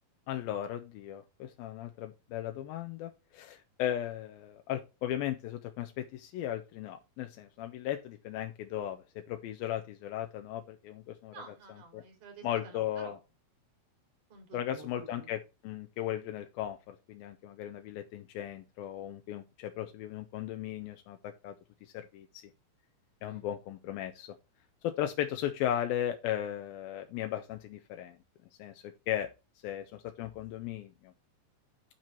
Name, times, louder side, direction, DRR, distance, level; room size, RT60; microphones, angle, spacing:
voice 1, 0.3-11.3 11.9-12.0 12.4-13.2 14.5-21.5 21.8-22.4 23.2-24.3 24.8-28.2 28.6-29.3 29.6-31.1, left 11 dB, 85° left, 6 dB, 2.6 m, -36 dB
voice 2, 11.3-13.2 14.3-15.3 23.3-23.5, right 3 dB, 55° right, 4 dB, 4.4 m, -50 dB
10.5 x 4.6 x 4.4 m, 0.27 s
omnidirectional pair, 4.2 m